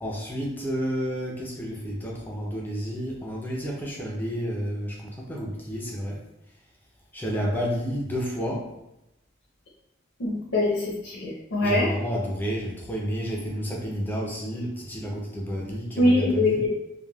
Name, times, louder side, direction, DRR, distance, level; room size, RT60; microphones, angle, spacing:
voice 1, 0.0-6.2 7.1-8.7 11.6-16.6, equal, 10° left, -2 dB, 0.5 m, -30 dB
voice 2, 10.2-11.9 16.0-16.7, left 2 dB, 75° left, -5 dB, 0.7 m, -23 dB
3.2 x 2.2 x 2.3 m, 0.89 s
head